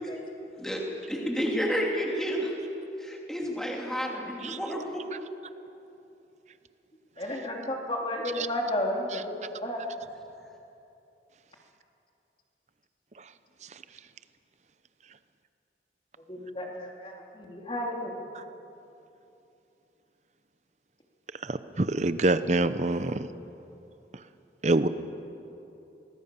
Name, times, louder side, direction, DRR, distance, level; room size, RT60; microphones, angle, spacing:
voice 1, 0.6-2.5 3.0-5.0, equal, 5° left, -1 dB, 2.8 m, -30 dB
voice 2, 7.2-9.8 16.3-18.2, left 1 dB, 30° left, 0 dB, 3.0 m, -32 dB
voice 3, 21.4-23.3 24.6-24.9, right 2 dB, 40° right, 12 dB, 0.8 m, -25 dB
24.0 x 20.0 x 6.9 m, 2.9 s
head